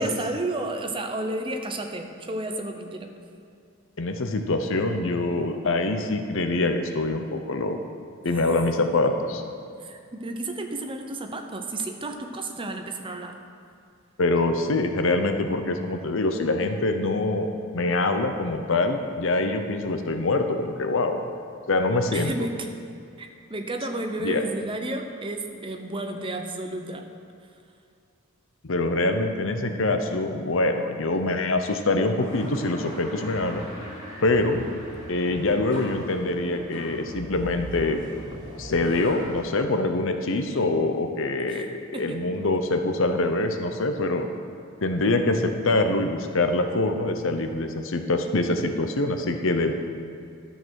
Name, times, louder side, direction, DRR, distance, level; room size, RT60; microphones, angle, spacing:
voice 1, 0.0-3.1 8.3-8.5 9.8-13.4 22.1-22.7 23.2-27.1 41.5-42.3, right 2 dB, 25° right, 5 dB, 0.8 m, -32 dB
voice 2, 4.0-7.8 8.2-9.4 14.2-21.2 21.7-22.3 24.2-24.4 28.6-33.7 34.2-34.6 35.1-38.0 38.6-41.7 42.0-44.3 44.8-49.7, left 2 dB, 65° left, 6 dB, 0.8 m, -24 dB
sound 1, 32.2-39.4, equal, 25° left, 3.2 m, -40 dB
12.5 x 6.7 x 6.4 m, 2.4 s
head